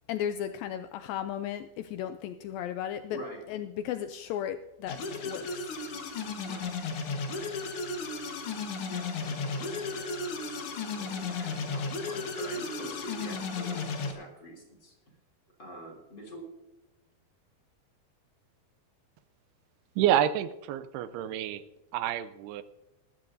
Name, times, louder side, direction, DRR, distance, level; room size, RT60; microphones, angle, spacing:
voice 1, 0.1-3.2 3.5-5.7, left 10 dB, 80° left, 9 dB, 2.1 m, -35 dB
voice 2, 3.1-3.4 6.5-6.7 7.3-7.5 8.9-14.9 15.6-16.4, equal, 30° left, -1 dB, 3.2 m, -45 dB
sound 1, 4.9-14.1, left 4 dB, 65° left, 1.4 m, -34 dB
voice 3, 20.0-21.6 21.9-22.6, right 11 dB, 90° right, 13 dB, 2.7 m, -28 dB
20.0 x 13.5 x 2.7 m, 1.0 s
omnidirectional pair, 4.5 m